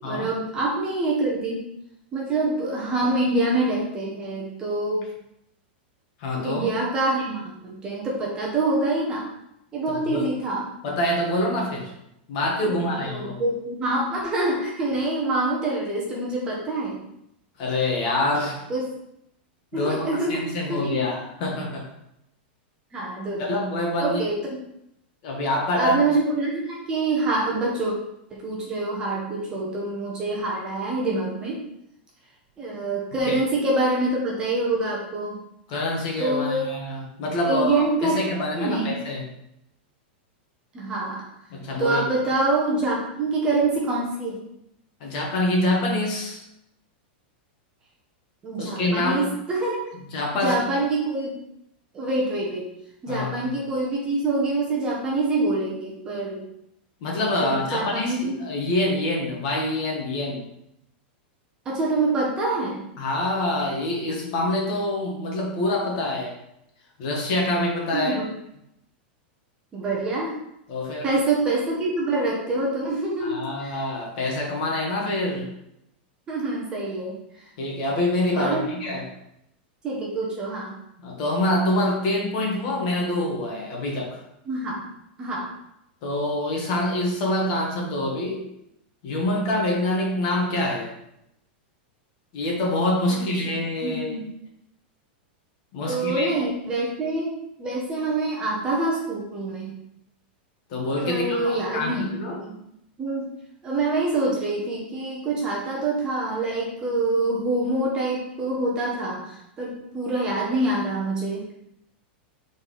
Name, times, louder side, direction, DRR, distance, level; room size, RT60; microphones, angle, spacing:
voice 1, 0.0-1.6 2.1-5.1 6.4-9.3 9.7-10.6 12.7-17.0 18.7-18.8 19.7-21.0 22.9-23.5 24.0-24.5 25.8-27.9 28.3-31.6 32.6-35.4 36.2-36.6 37.5-38.2 38.6-39.0 40.7-41.2 41.8-44.4 48.4-49.8 50.3-51.3 51.9-52.7 53.0-56.4 57.4-58.3 61.6-62.8 67.9-68.3 69.7-70.3 71.0-73.8 76.3-77.2 78.4-78.8 79.8-80.7 84.5-84.8 85.2-85.5 93.1-93.3 93.8-94.2 95.9-99.7 101.0-102.5 103.0-103.2 103.6-111.4, right 2 dB, 15° right, -4 dB, 1.0 m, -26 dB
voice 2, 6.2-6.7 10.0-10.3 10.8-11.9 12.3-13.4 17.6-18.7 19.7-20.0 20.3-21.8 23.4-24.2 25.2-26.0 35.7-39.3 41.5-42.0 45.0-46.4 48.6-49.2 50.1-50.6 53.1-53.3 57.0-60.4 63.0-66.4 67.0-68.2 70.7-71.1 73.2-75.5 77.6-79.1 81.0-84.2 86.0-88.4 89.0-90.9 92.3-94.2 95.7-96.3 100.7-102.4, left 1 dB, 40° left, -1 dB, 1.5 m, -26 dB
4.5 x 4.1 x 5.4 m, 0.80 s
supercardioid pair, 175°, 6 cm